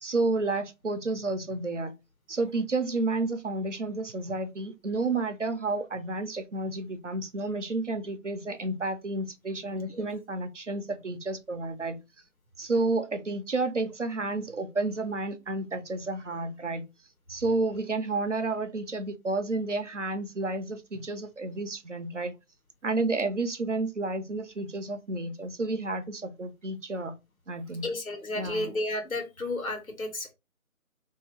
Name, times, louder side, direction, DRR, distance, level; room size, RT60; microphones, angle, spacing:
voice 1, 0.0-1.9 2.3-12.0 12.6-16.8 17.3-22.3 22.8-27.2 27.5-27.9 28.4-28.7, right 2 dB, 55° right, 0.6 m, -31 dB
voice 2, 27.8-30.3, left 2 dB, 70° left, 1.2 m, -32 dB
3.0 x 2.7 x 3.0 m
figure-of-eight pair, 170°, 43 cm